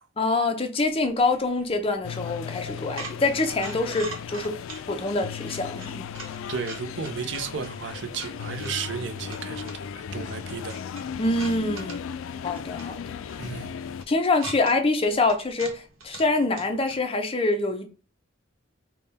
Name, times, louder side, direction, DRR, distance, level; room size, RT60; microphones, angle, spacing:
voice 1, 0.2-4.5 4.9-6.1 11.2-12.1 12.4-13.0 14.1-17.9, left 2 dB, 30° left, 0.5 m, -25 dB
sound 1, 0.8-17.0, right 3 dB, 85° right, 1.0 m, -45 dB
sound 2, 2.0-14.1, left 7 dB, 75° left, 0.3 m, -36 dB
voice 2, 6.5-9.7 10.1-10.8 13.4-13.8, right 5 dB, 60° right, 0.5 m, -33 dB
3.5 x 2.2 x 4.0 m
head